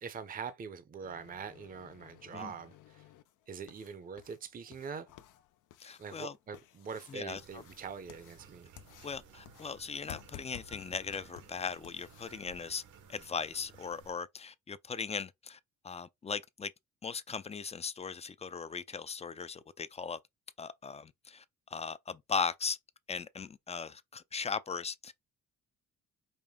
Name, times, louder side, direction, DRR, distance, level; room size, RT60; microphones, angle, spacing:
voice 1, 0.0-3.0 3.5-5.1 6.0-8.7, right 6 dB, 30° right, 0.6 m, -43 dB
sound 1, 1.0-12.4, left 12 dB, 85° left, 0.6 m, -55 dB
voice 2, 5.8-6.4 7.1-7.6 9.0-12.8 13.1-15.6 15.8-16.7 17.0-20.2 20.6-21.4 21.7-22.8 23.1-25.1, left 5 dB, 20° left, 0.4 m, -38 dB
sound 2, 7.3-14.1, right 6 dB, 75° right, 1.1 m, -57 dB
5.1 x 2.1 x 3.6 m
cardioid pair, 90°, 30 cm